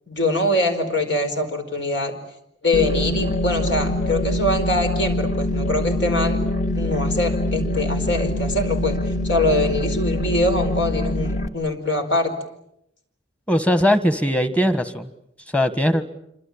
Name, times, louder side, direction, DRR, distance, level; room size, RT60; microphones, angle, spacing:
voice 1, 0.1-2.1 2.6-6.4 6.7-9.0 9.2-12.3, left 1 dB, 65° left, 5 dB, 4.7 m, -23 dB
sound 1, 2.7-11.5, left 1 dB, 40° left, 2.0 m, -24 dB
voice 2, 13.5-15.1 15.5-16.0, equal, 5° left, 11 dB, 1.5 m, -19 dB
27.0 x 25.0 x 8.7 m, 0.79 s
head